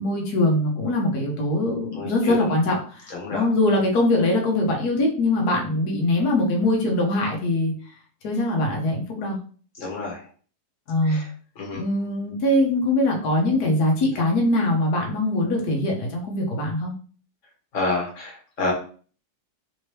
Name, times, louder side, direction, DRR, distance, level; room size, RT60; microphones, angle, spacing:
voice 1, 0.0-7.7 8.2-9.4 10.9-11.2 11.7-16.9, left 1 dB, 70° left, 0 dB, 1.3 m, -22 dB
voice 2, 1.9-2.4 3.1-3.4 9.8-10.2 11.1-11.2 11.6-11.8 17.7-18.7, left 2 dB, 50° left, -2 dB, 1.6 m, -28 dB
3.5 x 2.9 x 3.1 m, 0.42 s
omnidirectional pair, 1.8 m